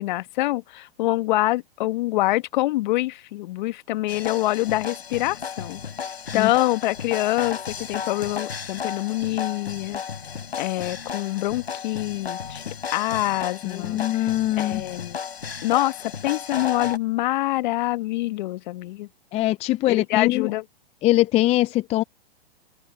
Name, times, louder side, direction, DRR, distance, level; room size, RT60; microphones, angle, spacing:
voice 1, 0.0-5.8 6.3-10.0 10.6-15.2 15.6-19.1 19.9-20.6, left 17 dB, 50° left, 1.6 m, -25 dB
sound 1, 4.1-17.0, left 7 dB, 80° left, 3.6 m, -34 dB
voice 2, 13.6-14.8 19.3-20.5 21.0-22.0, left 16 dB, 20° left, 0.6 m, -22 dB
open air
hypercardioid pair, 120°, 31 cm